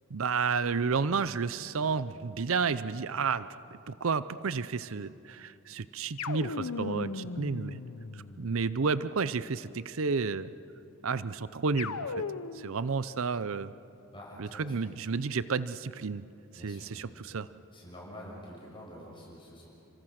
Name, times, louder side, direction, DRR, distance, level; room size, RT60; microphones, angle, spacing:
voice 1, 0.1-3.5 3.9-7.8 8.1-10.5 11.0-12.2 12.5-13.7 14.4-16.2 16.5-17.5, right 5 dB, 65° right, 15 dB, 0.6 m, -31 dB
sound 1, 6.2-8.7 11.8-12.8, left 4 dB, 80° left, 0.8 m, -37 dB
voice 2, 14.1-14.9 16.5-17.1 17.7-19.7, equal, 20° left, -4 dB, 6.2 m, -47 dB
30.0 x 25.5 x 6.5 m, 2.7 s
head